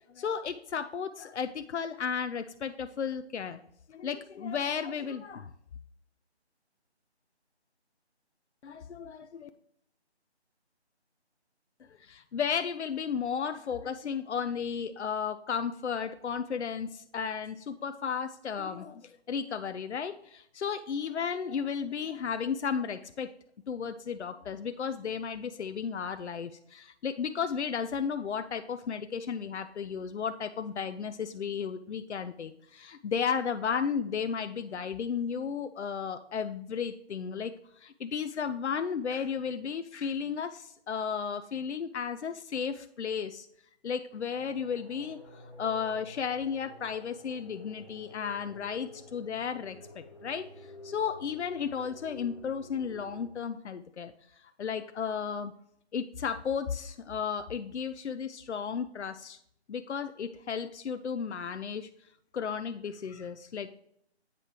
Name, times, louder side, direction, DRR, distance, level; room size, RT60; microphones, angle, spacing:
voice 1, 0.1-3.6 3.9-5.5 8.6-9.5 12.0-23.3 23.7-43.5 43.8-55.5 55.9-59.4 59.7-61.9 62.3-63.7, left 6 dB, 85° left, 9 dB, 0.5 m, -34 dB
sound 1, 44.3-53.3, left 2 dB, 30° left, 1.2 m, -50 dB
8.3 x 4.9 x 2.9 m, 0.73 s
figure-of-eight pair, 175°, 34 cm